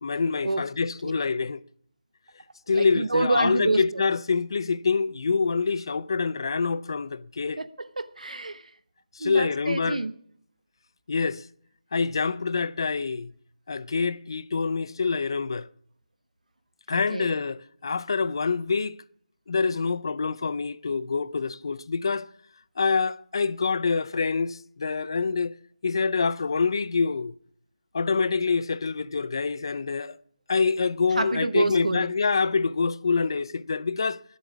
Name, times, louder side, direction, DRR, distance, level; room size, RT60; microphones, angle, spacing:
voice 1, 0.0-1.6 2.7-7.6 9.1-10.0 11.1-11.4 11.9-13.3 13.7-15.7 16.9-19.0 19.5-22.3 22.8-25.5 25.8-27.3 27.9-30.2 30.5-34.2, left 4 dB, 40° left, 0.5 m, -26 dB
voice 2, 2.7-4.0 7.6-8.7 9.2-10.1 16.9-17.3 31.1-32.1, right 2 dB, 85° right, 1.0 m, -28 dB
21.0 x 8.1 x 6.1 m
figure-of-eight pair, 170°, 4 cm